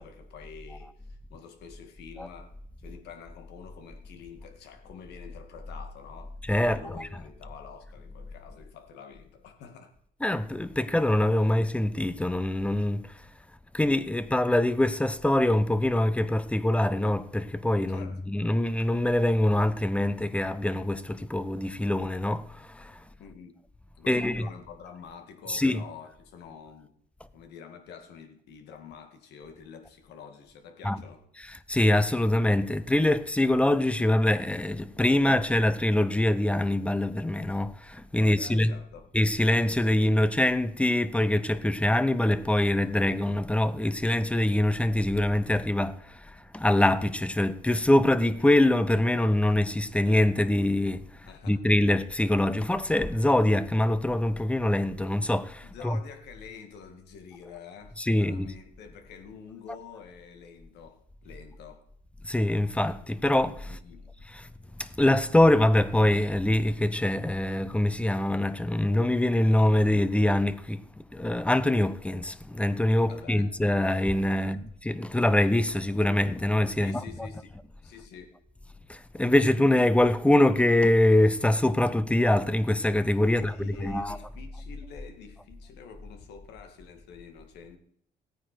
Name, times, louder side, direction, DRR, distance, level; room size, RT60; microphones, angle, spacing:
voice 1, 0.0-6.3 6.6-9.9 17.9-18.3 23.2-23.5 24.0-26.9 27.3-31.3 38.2-39.1 51.3-51.6 55.6-61.8 63.6-64.1 73.1-73.5 74.4-74.6 76.8-78.4 83.2-87.8, left 6 dB, 80° left, 2.2 m, -47 dB
voice 2, 6.4-7.3 10.2-13.1 13.7-23.0 24.1-24.5 25.5-25.8 30.8-31.0 31.4-38.8 39.1-56.0 58.0-58.5 62.2-63.8 64.3-64.5 64.8-77.4 78.9-84.2, left 1 dB, 5° left, 0.7 m, -24 dB
16.5 x 9.3 x 4.5 m
cardioid pair, 110°, 17 cm